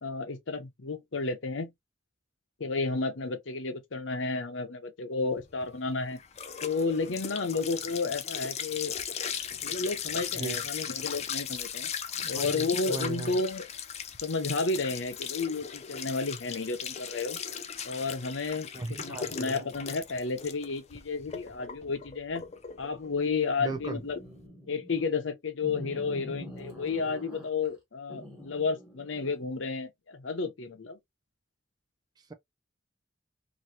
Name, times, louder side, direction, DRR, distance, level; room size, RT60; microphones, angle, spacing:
voice 1, 0.0-1.7 2.6-6.2 6.6-8.9 9.6-11.9 12.3-13.7 14.2-17.4 17.8-18.7 19.0-22.4 22.8-24.2 24.7-31.0, left 4 dB, 85° left, 0.7 m, -32 dB
sound 1, 5.4-24.4, left 8 dB, 35° left, 0.4 m, -38 dB
voice 2, 12.2-13.4 18.7-19.7 23.6-24.0, right 3 dB, 20° right, 0.4 m, -37 dB
sound 2, 23.6-25.1 25.6-27.7 28.1-29.5, left 1 dB, 5° right, 1.5 m, -45 dB
3.0 x 2.6 x 2.6 m
head